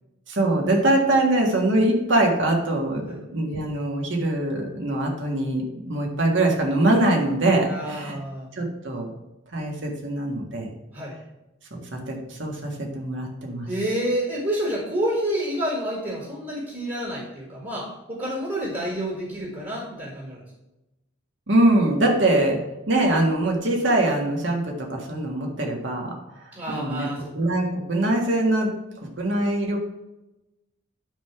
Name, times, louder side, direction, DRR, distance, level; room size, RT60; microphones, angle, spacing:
voice 1, 0.3-8.2 8.6-9.1 9.5-10.7 11.7-13.7 21.5-22.6 22.9-28.7 29.0-29.8, right 1 dB, 70° right, 0 dB, 1.7 m, -23 dB
voice 2, 7.7-8.5 10.9-11.1 13.7-20.4 26.5-27.3, equal, 30° right, -3 dB, 1.7 m, -29 dB
10.0 x 3.7 x 5.8 m, 0.97 s
head